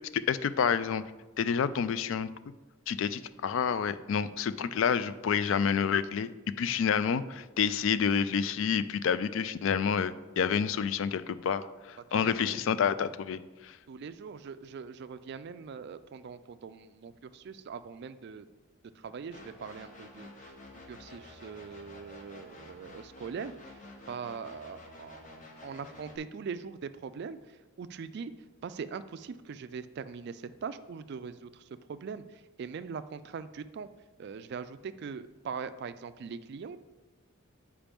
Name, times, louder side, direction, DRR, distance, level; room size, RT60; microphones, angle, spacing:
voice 1, 0.1-1.0 1.4-2.3 2.9-6.3 6.6-13.8, left 7 dB, 60° left, 14 dB, 0.3 m, -29 dB
voice 2, 12.1-12.6 13.9-18.5 19.0-20.6 20.9-23.8 24.1-28.3 28.6-33.9 34.2-36.8, right 6 dB, 50° right, 13 dB, 0.3 m, -41 dB
sound 1, 19.3-26.2, left 2 dB, 35° left, 0.8 m, -50 dB
8.8 x 4.9 x 3.5 m, 1.2 s
head